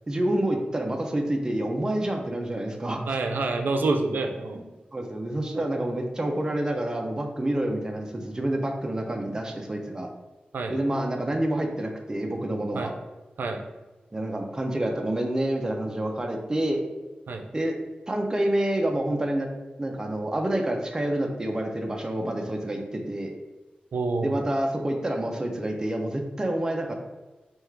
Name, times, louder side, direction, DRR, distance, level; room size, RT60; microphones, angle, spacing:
voice 1, 0.1-3.2 4.5-4.6 4.9-10.1 10.7-12.9 14.1-16.8 17.5-17.7 18.1-19.5 19.8-23.3 24.2-26.9, right 1 dB, 20° right, 2 dB, 0.5 m, -28 dB
voice 2, 3.1-4.7 10.5-10.8 12.7-12.9 13.4-13.6 17.3-17.4 23.9-24.4, right 3 dB, 85° right, 5 dB, 0.4 m, -27 dB
3.4 x 2.4 x 4.5 m, 1.2 s
wide cardioid pair, 110°, 3 cm